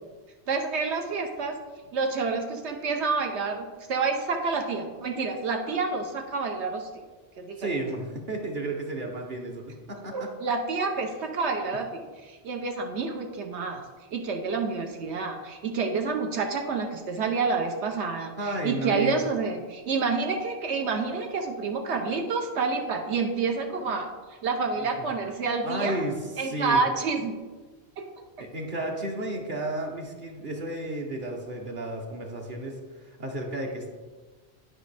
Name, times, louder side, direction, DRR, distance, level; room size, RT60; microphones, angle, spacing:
voice 1, 0.5-1.6 1.9-6.9 7.4-7.6 10.1-13.8 14.1-24.1 24.4-26.0 26.4-27.4 28.0-28.1, right 4 dB, 75° right, 3 dB, 1.1 m, -28 dB
voice 2, 7.6-10.3 18.4-19.2 24.8-24.9 25.6-26.8 28.4-32.7 33.0-33.9, right 2 dB, 50° right, 0 dB, 1.1 m, -32 dB
11.0 x 5.1 x 3.3 m, 1.3 s
omnidirectional pair, 1.2 m